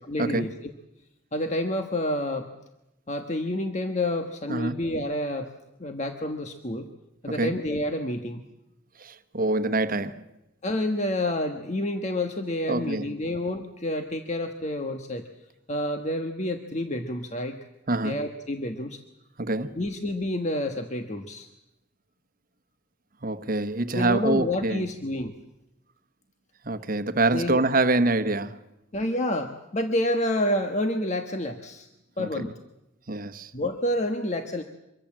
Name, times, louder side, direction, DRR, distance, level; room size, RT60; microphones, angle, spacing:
voice 1, 0.1-0.7 1.3-2.5 3.1-5.5 5.8-6.9 7.2-8.4 10.6-15.3 15.7-17.6 18.0-19.0 19.8-21.5 23.9-25.4 27.3-27.6 28.9-31.9 32.2-32.5 33.5-34.6, left 1 dB, 35° left, 1.4 m, -29 dB
voice 2, 4.5-4.8 7.3-7.6 9.0-10.2 12.7-13.2 17.9-18.2 19.4-19.7 23.2-24.8 26.6-28.6 32.2-32.5 33.1-33.5, right 2 dB, 45° right, 1.3 m, -26 dB
25.0 x 23.5 x 7.5 m
head